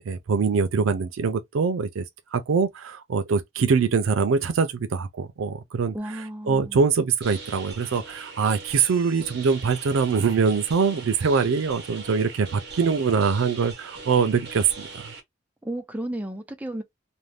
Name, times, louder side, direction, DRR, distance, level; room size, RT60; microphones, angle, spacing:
voice 1, 0.0-2.0 2.3-6.0 6.5-15.1, right 5 dB, 85° right, 0.4 m, -23 dB
voice 2, 5.9-6.8 15.6-16.8, right 1 dB, 10° right, 0.4 m, -33 dB
sound 1, 7.2-15.2, right 4 dB, 55° right, 0.8 m, -41 dB
2.6 x 2.1 x 3.1 m
head